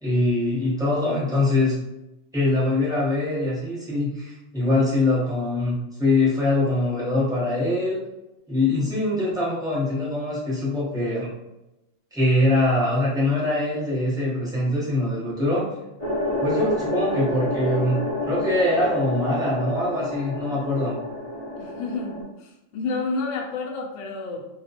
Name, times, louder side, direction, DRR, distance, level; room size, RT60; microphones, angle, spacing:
voice 1, 0.0-1.8 2.3-8.0 8.5-11.3 12.1-15.6 16.4-18.0 18.3-21.0, left 2 dB, 5° right, -8 dB, 0.8 m, -23 dB
sound 1, 16.0-22.2, left 1 dB, 35° left, 0.5 m, -29 dB
voice 2, 21.6-24.4, left 3 dB, 70° left, 0 dB, 0.8 m, -30 dB
2.3 x 2.3 x 2.7 m, 0.94 s
omnidirectional pair, 1.4 m